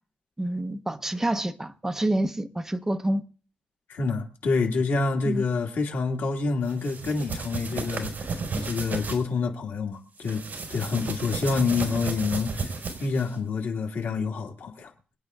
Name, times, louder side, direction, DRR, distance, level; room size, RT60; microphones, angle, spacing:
voice 1, 0.4-3.2 5.2-5.4, right 1 dB, 10° right, 1.0 m, -27 dB
voice 2, 3.9-8.1 8.6-10.4 10.7-12.7 13.0-15.2, left 4 dB, 85° left, 2.0 m, -27 dB
sound 1, 6.7-9.2 10.2-13.3, right 4 dB, 55° right, 4.5 m, -33 dB
26.5 x 9.2 x 2.4 m
wide cardioid pair, 115°, 3 cm